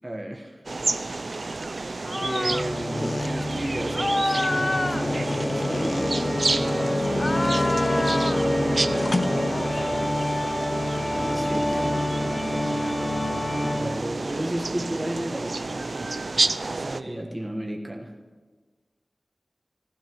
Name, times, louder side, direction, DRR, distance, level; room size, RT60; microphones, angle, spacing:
voice 1, 0.0-0.6 2.2-6.4 11.2-12.0 12.3-12.7 13.6-16.2 17.0-18.1, right 1 dB, 25° right, 0 dB, 1.3 m, -33 dB
sound 1, 0.7-17.0, right 3 dB, 70° right, 0.4 m, -30 dB
sound 2, 2.0-2.7 2.9-3.3 3.9-6.7 7.1-8.5 9.0-10.1 11.1-12.9, left 2 dB, 45° left, 0.5 m, -29 dB
Organ, 2.4-14.2, left 1 dB, 85° left, 2.1 m, -27 dB
voice 2, 6.5-10.3 16.7-17.3, right 1 dB, 50° right, 0 dB, 1.3 m, -39 dB
16.0 x 14.5 x 3.1 m, 1.5 s
wide cardioid pair, 55°, 0 cm